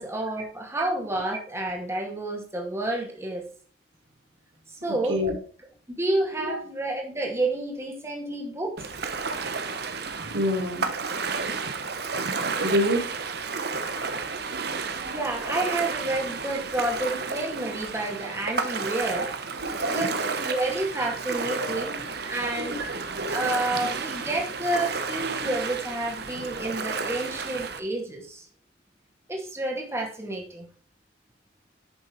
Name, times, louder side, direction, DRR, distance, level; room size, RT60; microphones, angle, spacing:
voice 1, 0.0-3.5 4.7-5.2 5.9-8.9 15.0-19.3 19.9-22.0 22.3-22.8 23.3-28.5 29.3-30.7, right 2 dB, 15° right, 2.3 m, -30 dB
Ocean, 8.8-27.8, right 4 dB, 55° right, 1.2 m, -32 dB
voice 2, 10.3-10.9 12.6-13.1 14.5-15.2 19.2-19.3 19.6-20.2 21.6-21.9 22.2-23.5, equal, 90° right, 4.1 m, -29 dB
10.5 x 6.8 x 4.7 m
head